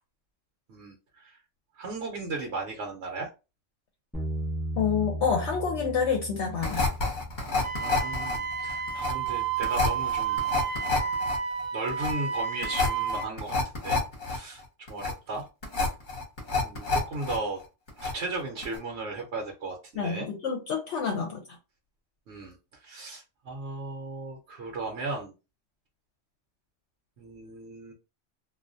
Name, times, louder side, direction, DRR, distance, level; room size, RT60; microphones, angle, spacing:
voice 1, 0.7-1.4 1.8-3.3 7.8-10.4 11.7-14.0 14.2-14.6 14.9-15.5 16.6-17.6 18.0-20.3 22.3-25.3 27.2-27.9, right 3 dB, 65° right, 0.9 m, -36 dB
Bass guitar, 4.1-10.4, right 1 dB, ahead, 0.4 m, -38 dB
voice 2, 4.8-6.8 19.9-21.4, left 6 dB, 70° left, 0.8 m, -28 dB
sound 1, 6.6-17.4 17.6-18.4 18.6-18.8, left 3 dB, 45° left, 0.9 m, -29 dB
Wind instrument woodwind instrument, 7.6-13.3, right 7 dB, 90° right, 0.9 m, -31 dB
2.3 x 2.2 x 2.5 m
omnidirectional pair, 1.3 m